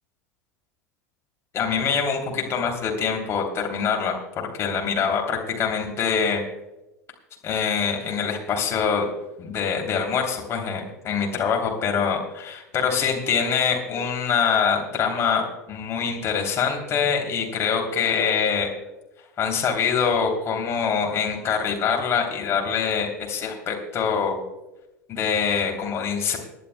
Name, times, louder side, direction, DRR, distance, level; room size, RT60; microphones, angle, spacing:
voice 1, 1.5-4.2 4.5-6.4 7.4-9.1 9.4-18.7 19.4-24.4 25.1-26.4, left 6 dB, 30° left, 1 dB, 3.0 m, -24 dB
27.5 x 11.0 x 2.2 m, 0.99 s
figure-of-eight pair, 80°, 9 cm